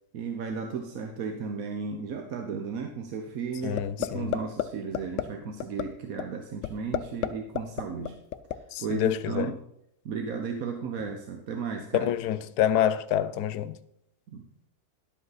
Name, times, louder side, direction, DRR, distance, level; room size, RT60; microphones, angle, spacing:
voice 1, 0.1-8.2 8.5-9.6 10.0-12.1 14.3-14.5, right 5 dB, 65° right, 1.2 m, -35 dB
voice 2, 3.6-4.3 8.7-9.5 11.9-13.7, left 10 dB, 90° left, 1.2 m, -27 dB
sound 1, 3.8-4.1 4.3-4.6 4.9-5.2 5.6-5.8 6.2-6.3 6.6-7.3 7.6-8.5, left 12 dB, 65° left, 0.8 m, -28 dB
11.5 x 7.8 x 4.0 m
omnidirectional pair, 1.6 m